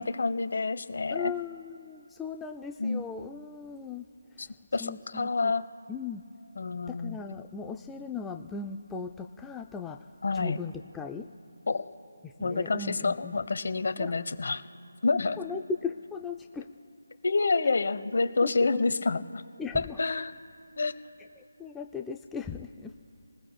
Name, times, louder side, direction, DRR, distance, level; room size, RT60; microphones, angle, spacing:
voice 1, 0.0-1.3 2.8-3.0 4.4-4.5 4.7-5.6 6.6-7.2 10.2-10.6 11.7-11.9 12.4-14.6 15.0-15.4 17.2-19.4 19.7-20.3 20.8-20.9, left 3 dB, 55° left, 10 dB, 1.0 m, -28 dB
voice 2, 1.1-4.1 4.4-4.5 4.8-5.5 5.9-6.2 6.9-10.0 10.3-11.3 12.2-13.4 14.0-14.1 15.4-16.7 18.4-18.8 19.6-20.0 21.4-22.9, left 5 dB, 5° left, 3 dB, 0.3 m, -38 dB
29.0 x 20.5 x 2.2 m, 2.6 s
figure-of-eight pair, 170°, 0 cm